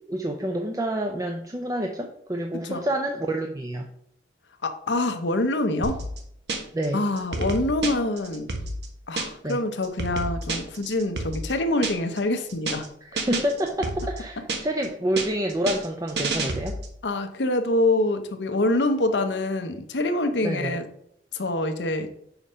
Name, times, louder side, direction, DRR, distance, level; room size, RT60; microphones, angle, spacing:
voice 1, 0.1-3.9 6.7-7.0 9.4-9.6 13.0-16.8 20.4-20.8, right 1 dB, 20° right, 3 dB, 0.5 m, -28 dB
voice 2, 4.6-6.0 6.9-8.5 9.1-12.9 17.0-20.8 21.3-22.1, left 2 dB, 85° left, 7 dB, 0.8 m, -25 dB
sound 1, 5.8-6.9 7.2-9.5 9.8-12.2 12.5-12.9 13.2-14.9 15.2-17.0, right 2 dB, 70° right, 1.3 m, -30 dB
5.9 x 4.8 x 5.5 m, 0.72 s
head